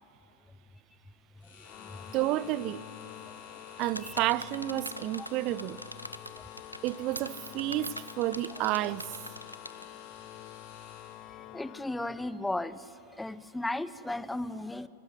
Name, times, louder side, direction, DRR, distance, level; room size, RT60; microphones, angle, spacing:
sound 1, 1.4-11.5, left 5 dB, 60° left, 6.9 m, -54 dB
Organ, 1.6-12.5, left 14 dB, 35° left, 0.8 m, -48 dB
voice 1, 2.1-2.8 3.8-5.8 6.8-9.1, right 15 dB, 40° right, 0.5 m, -30 dB
sound 2, 3.8-9.9, equal, 90° left, 0.6 m, -42 dB
voice 2, 11.5-14.9, left 2 dB, 5° left, 0.7 m, -35 dB
26.0 x 13.0 x 9.9 m
figure-of-eight pair, 90°, 0 cm